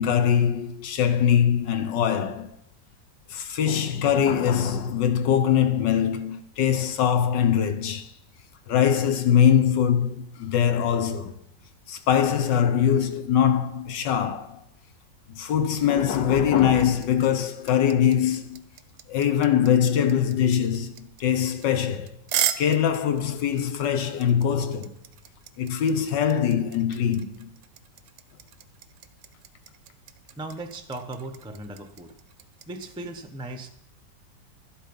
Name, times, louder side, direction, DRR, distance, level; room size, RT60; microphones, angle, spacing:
voice 1, 0.0-2.6 3.3-8.1 8.7-11.4 11.9-14.6 15.3-18.6 19.1-22.2 22.6-25.0 25.6-27.5, left 8 dB, 80° left, 1.5 m, -22 dB
sound 1, 16.1-32.9, right 11 dB, 75° right, 1.3 m, -35 dB
voice 2, 30.4-32.1 32.7-33.7, right 2 dB, 5° right, 0.5 m, -37 dB
12.0 x 11.0 x 5.4 m
omnidirectional pair, 1.9 m